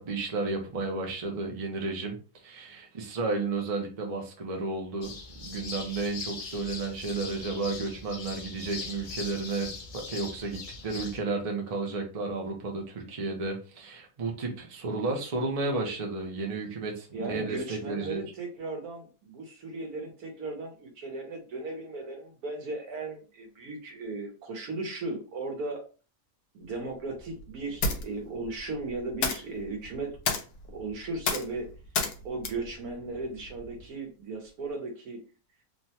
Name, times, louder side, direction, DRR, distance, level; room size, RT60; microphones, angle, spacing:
voice 1, 0.0-2.2 2.4-5.1 5.4-18.2, right 3 dB, 40° right, 2 dB, 0.5 m, -32 dB
sound 1, 5.0-11.2, left 4 dB, 60° left, 0.5 m, -40 dB
voice 2, 17.1-25.8 26.5-30.2 30.7-31.7 32.2-35.2, right 3 dB, 80° right, 3 dB, 1.3 m, -36 dB
sound 2, 26.6-33.9, left 4 dB, 90° left, 1.2 m, -34 dB
3.4 x 2.2 x 2.7 m, 0.35 s
omnidirectional pair, 1.6 m